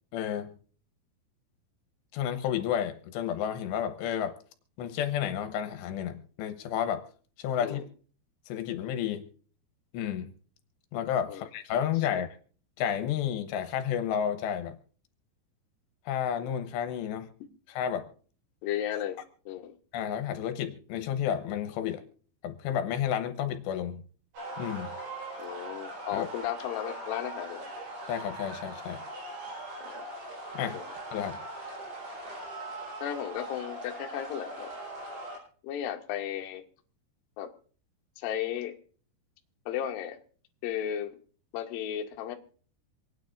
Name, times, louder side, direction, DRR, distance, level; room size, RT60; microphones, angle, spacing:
voice 1, 0.1-0.5 2.1-4.4 4.8-7.0 7.4-7.8 8.5-9.2 9.9-10.3 10.9-12.3 12.8-14.8 16.1-17.3 17.7-18.1 19.9-22.0 22.4-24.0 24.6-24.9 26.1-26.3 28.1-29.0 30.5-31.4, left 9 dB, 85° left, 8 dB, 3.1 m, -31 dB
voice 2, 18.6-19.2 19.5-19.7 25.4-27.7 29.8-30.0 30.7-30.8 33.0-34.7 35.6-36.6 37.4-37.5 38.2-38.7 39.7-40.2 40.6-41.2 41.5-42.4, left 10 dB, 70° left, 4 dB, 2.4 m, -34 dB
sound 1, 24.3-35.4, right 1 dB, 75° right, 7.0 m, -40 dB
27.0 x 9.3 x 2.6 m, 0.43 s
omnidirectional pair, 5.0 m